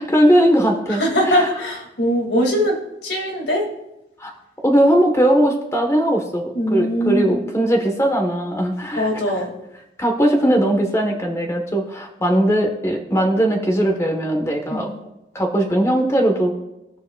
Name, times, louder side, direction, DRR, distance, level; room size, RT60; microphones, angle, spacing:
voice 1, 0.0-1.5 4.2-4.3 4.6-9.1 9.3-9.4 10.0-14.9 15.3-16.5, right 1 dB, 15° left, 2 dB, 1.2 m, -19 dB
voice 2, 0.9-3.7 6.5-7.3 9.0-9.5 14.7-14.8, equal, 75° left, 0 dB, 2.3 m, -21 dB
22.0 x 7.4 x 2.3 m, 0.93 s
head